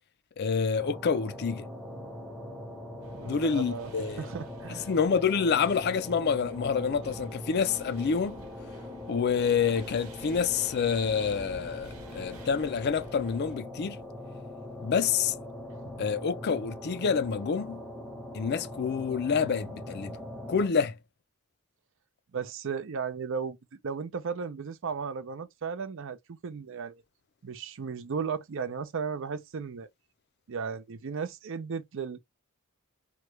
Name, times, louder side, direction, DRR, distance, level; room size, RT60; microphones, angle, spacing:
voice 1, 0.4-1.7 3.2-4.3 4.9-8.4 9.1-14.0 14.8-15.4 16.0-17.8 18.3-20.1 20.5-21.0, left 6 dB, 50° left, 0.4 m, -27 dB
sound 1, 0.8-20.7, left 1 dB, ahead, 0.7 m, -42 dB
sound 2, 3.0-13.6, right 2 dB, 90° right, 1.1 m, -51 dB
voice 2, 3.1-3.9 4.2-4.9 15.8-15.9 22.3-23.6 23.8-27.0 27.4-29.9 30.5-32.2, right 6 dB, 60° right, 0.5 m, -35 dB
3.0 x 2.2 x 3.1 m
head